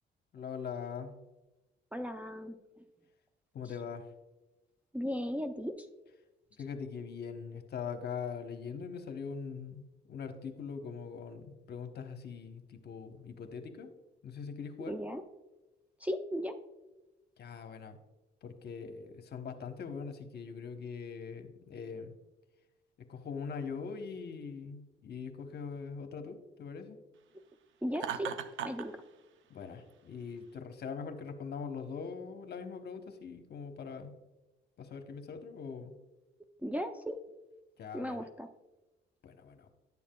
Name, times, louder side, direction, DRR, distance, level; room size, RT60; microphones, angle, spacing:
voice 1, 0.3-1.1 3.5-4.1 6.6-13.9 14.2-15.0 17.4-18.0 18.4-22.1 23.1-27.0 29.5-34.2 34.8-36.0 37.8-38.3 39.2-39.7, left 6 dB, 55° left, 6 dB, 0.9 m, -42 dB
voice 2, 1.9-2.6 4.9-5.7 14.9-15.2 16.0-16.5 27.8-28.3 28.6-29.0 36.6-37.2 37.9-38.5, equal, 5° right, 3 dB, 0.5 m, -36 dB
Laughter, 27.9-28.9, right 9 dB, 75° right, 0.5 m, -37 dB
11.0 x 7.0 x 2.3 m, 1.1 s
cardioid pair, 90°, 20 cm